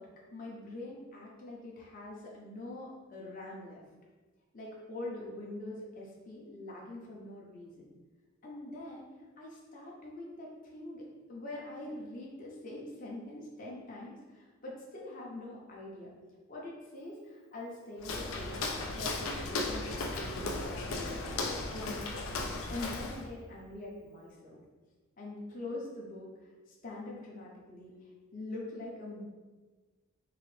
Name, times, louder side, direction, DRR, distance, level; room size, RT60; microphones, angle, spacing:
voice 1, 0.0-3.8 4.5-7.9 8.4-9.1 9.4-16.1 16.5-22.4 22.7-24.6 25.2-26.3 26.8-27.9 28.3-29.2, left 2 dB, 40° left, -4 dB, 0.6 m, -44 dB
Walk footsteps, 18.0-23.3, left 2 dB, 80° left, 0.4 m, -36 dB
3.8 x 2.5 x 3.2 m, 1.3 s
head